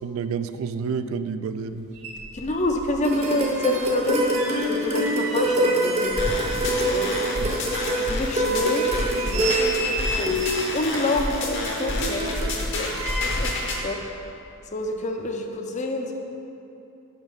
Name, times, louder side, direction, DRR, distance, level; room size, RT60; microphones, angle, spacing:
voice 1, 0.0-1.9 7.4-7.6, right 5 dB, 65° right, 11 dB, 0.3 m, -29 dB
sound 1, 1.7-1.8 1.9-2.9 3.2-7.2 7.5-7.6 8.2-8.3 8.8-10.8 11.6-13.6 13.9-14.1, right 1 dB, 90° right, 1.1 m, -33 dB
voice 2, 2.3-4.3 4.7-6.2 6.8-7.1 7.7-8.9 9.2-14.0 14.7-16.1, left 2 dB, 35° left, 3 dB, 0.5 m, -27 dB
sound 2, 3.0-12.5, right 1 dB, 30° right, 0.8 m, -26 dB
sound 3, 6.2-13.8, left 2 dB, 55° left, 1.0 m, -29 dB
6.2 x 5.1 x 5.4 m, 2.8 s
head